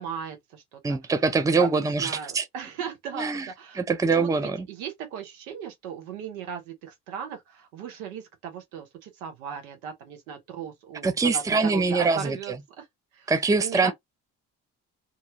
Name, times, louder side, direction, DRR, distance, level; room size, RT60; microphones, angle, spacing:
voice 1, 0.0-1.0 1.6-12.9 13.1-13.3 13.6-13.9, right 7 dB, 80° right, 1.1 m, -37 dB
voice 2, 0.8-2.4 3.2-3.5 3.7-4.7 11.0-12.4 13.3-13.9, right 4 dB, 10° right, 0.5 m, -23 dB
2.8 x 2.4 x 2.8 m
figure-of-eight pair, 45°, 43 cm